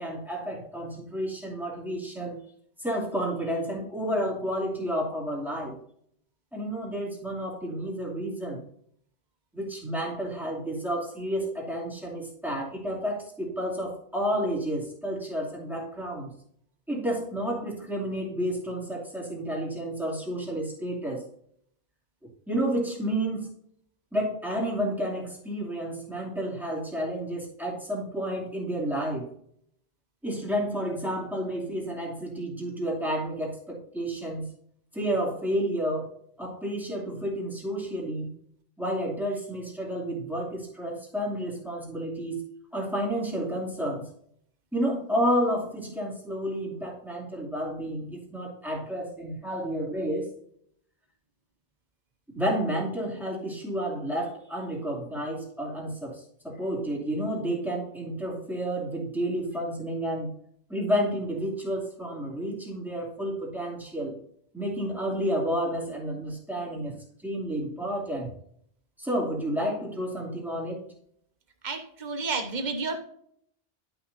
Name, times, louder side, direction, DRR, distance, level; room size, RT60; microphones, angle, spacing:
voice 1, 0.0-2.4 2.8-5.8 6.5-8.6 9.5-16.3 16.9-21.2 22.5-23.5 24.1-29.3 30.2-34.5 34.9-36.1 36.4-38.3 38.8-42.4 42.7-44.0 44.7-50.3 52.3-60.3 60.7-64.2 64.5-67.0 67.2-68.3 69.0-70.9, equal, ahead, -4 dB, 2.6 m, -30 dB
voice 2, 71.6-73.0, right 3 dB, 40° right, 5 dB, 1.3 m, -31 dB
11.5 x 6.2 x 2.7 m, 0.67 s
omnidirectional pair, 1.2 m